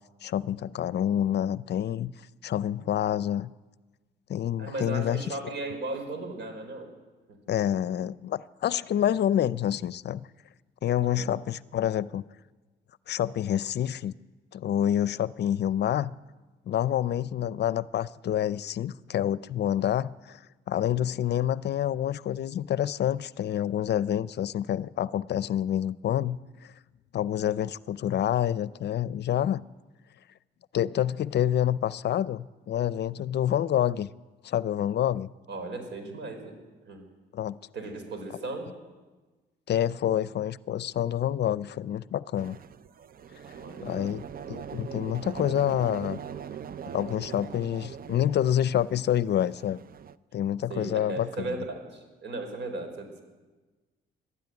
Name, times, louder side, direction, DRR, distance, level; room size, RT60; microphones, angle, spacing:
voice 1, 0.2-2.1 2.4-3.5 4.3-5.5 7.5-10.3 10.8-12.2 13.1-14.1 14.5-16.1 16.7-20.4 20.7-26.7 27.1-29.6 30.7-34.1 34.4-35.3 37.3-37.6 39.7-42.6 43.8-44.2 44.5-46.2 46.9-49.8 50.3-51.6, left 11 dB, 60° left, 18 dB, 0.6 m, -27 dB
voice 2, 4.6-6.9 11.0-11.3 35.5-36.6 36.9-37.0 37.7-38.7 43.5-44.2 50.7-51.6 51.8-53.2, right 2 dB, 65° right, 6 dB, 5.0 m, -36 dB
sound 1, 42.4-50.2, right 8 dB, 45° right, 0.6 m, -41 dB
22.0 x 13.0 x 9.6 m, 1.3 s
cardioid pair, 90°, 20 cm